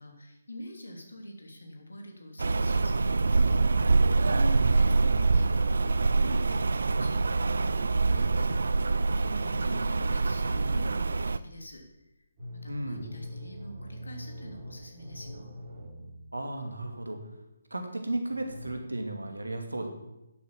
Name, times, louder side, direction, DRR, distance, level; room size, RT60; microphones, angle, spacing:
voice 1, 0.0-3.6 4.7-6.7 7.0-11.8 12.5-15.5, equal, 70° left, 3 dB, 3.2 m, -45 dB
Rain, 2.4-11.4, right 3 dB, 60° right, 0.6 m, -25 dB
voice 2, 4.3-4.8 12.7-13.1 16.3-17.2 17.7-19.9, right 1 dB, 75° right, 5 dB, 2.5 m, -34 dB
sound 1, 12.4-16.6 18.3-18.8, equal, 40° right, 4.2 m, -44 dB
11.0 x 8.2 x 7.4 m, 0.94 s
figure-of-eight pair, 145°, 0 cm